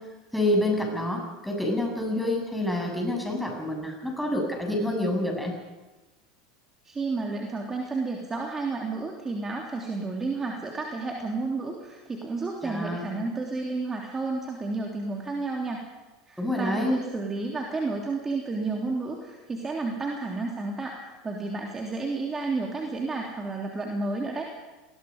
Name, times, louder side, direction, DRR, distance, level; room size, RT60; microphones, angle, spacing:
voice 1, 0.3-5.6 12.6-13.0 16.4-16.9, left 1 dB, ahead, 1 dB, 7.4 m, -27 dB
voice 2, 6.8-15.8 16.3-24.5, right 3 dB, 20° right, 0 dB, 3.2 m, -31 dB
30.0 x 21.0 x 5.4 m, 1.2 s
figure-of-eight pair, 80°, 2 cm